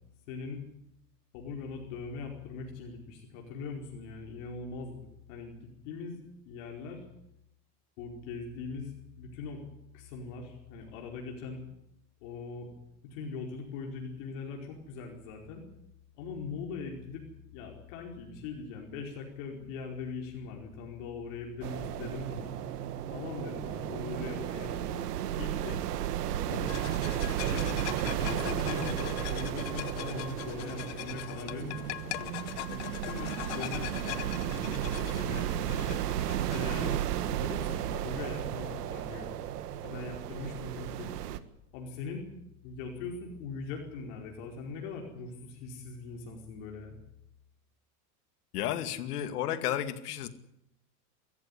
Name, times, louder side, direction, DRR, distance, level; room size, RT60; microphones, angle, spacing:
voice 1, 0.3-0.6 1.3-7.0 8.0-9.6 9.9-11.7 12.2-12.7 13.1-15.6 16.2-17.2 17.5-22.5 23.1-25.1 25.4-25.8 26.5-26.7 27.5-36.0 36.5-36.9 37.4-39.3 39.8-41.1 41.7-42.3 42.6-46.9, left 4 dB, 55° left, 1 dB, 4.8 m, -41 dB
sound 1, 21.6-41.4, right 11 dB, 85° right, 1.8 m, -34 dB
sound 2, 26.7-37.0, left 19 dB, 35° left, 0.8 m, -41 dB
voice 2, 48.5-50.3, left 11 dB, 75° left, 11 dB, 2.4 m, -32 dB
24.5 x 14.5 x 10.0 m, 0.82 s
supercardioid pair, 150°, 46 cm